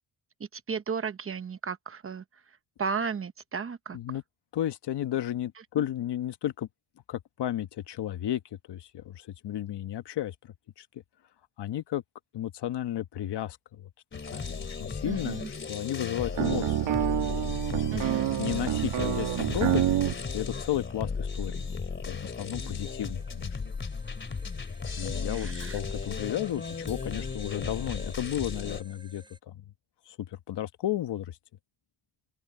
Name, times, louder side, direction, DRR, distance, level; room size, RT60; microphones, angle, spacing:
voice 1, 0.4-2.2 2.8-4.0 15.0-15.5 17.9-18.4 25.3-25.8, right 5 dB, 30° right, 0.8 m, -34 dB
voice 2, 4.5-6.7 7.1-10.9 11.6-12.0 12.3-13.9 14.3-18.0 18.4-19.8 20.3-21.7 22.1-23.5 24.9-29.5 30.1-31.4, left 12 dB, 60° left, 1.2 m, -33 dB
sound 1, 14.1-28.8, left 5 dB, 25° left, 2.8 m, -35 dB
sound 2, 16.3-20.2, right 12 dB, 80° right, 2.1 m, -27 dB
sound 3, 22.5-29.4, right 2 dB, 10° right, 8.0 m, -55 dB
open air
wide cardioid pair, 170°, 46 cm